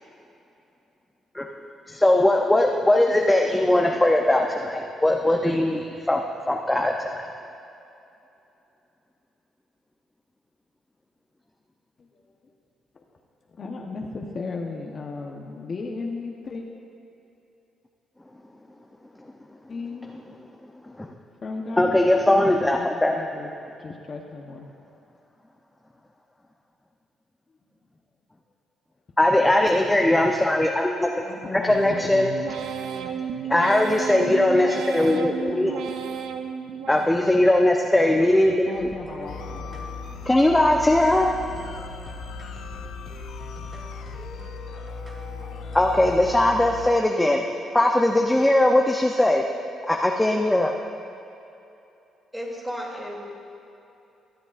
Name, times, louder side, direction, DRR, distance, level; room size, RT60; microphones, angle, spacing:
voice 1, 1.9-7.1 21.0-21.1 21.8-23.1 29.2-31.1 31.5-32.3 33.5-35.7 36.9-38.9 40.3-41.3 45.7-47.4 47.7-49.4 49.9-50.8, left 1 dB, 10° left, 1 dB, 0.7 m, -20 dB
voice 2, 12.0-12.4 12.9-13.0 13.5-16.6 19.7-20.1 20.6-20.7 21.4-23.5 23.8-24.7 31.2-32.2 35.0-36.2 38.7-39.9, left 3 dB, 45° left, 0 dB, 0.9 m, -36 dB
sound 1, 31.7-37.5 37.9-38.6 39.0-39.7 40.1-40.8 41.2-41.8 42.3-42.8, right 7 dB, 80° right, 0.6 m, -34 dB
sound 2, 38.7-46.4, right 1 dB, 25° right, 2.1 m, -44 dB
sound 3, 39.3-46.9, left 5 dB, 70° left, 0.5 m, -37 dB
voice 3, 52.3-53.2, equal, 5° right, -3 dB, 2.7 m, -33 dB
23.0 x 8.1 x 2.5 m, 2.8 s
cardioid pair, 90°, 0 cm